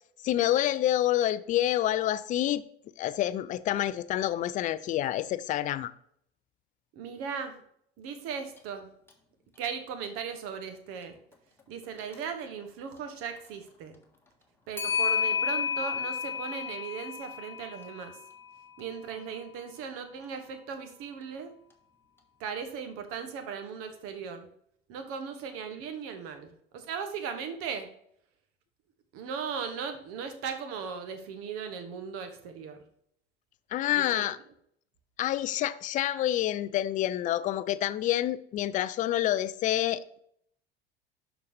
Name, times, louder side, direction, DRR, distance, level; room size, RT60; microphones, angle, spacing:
voice 1, 0.2-2.6 3.0-5.9 33.7-34.4 35.2-40.2, left 13 dB, 25° left, 0.4 m, -28 dB
voice 2, 6.9-7.6 8.0-8.9 9.6-11.2 11.7-14.0 14.7-18.2 18.8-21.5 22.4-24.5 24.9-27.9 29.1-32.8 33.9-34.3, right 6 dB, 50° right, 1.2 m, -38 dB
Clock, 8.6-8.7 9.1-9.2 12.0-12.2 14.8-19.0, left 7 dB, 5° left, 1.5 m, -32 dB
12.0 x 4.1 x 3.2 m
figure-of-eight pair, 70°, 30 cm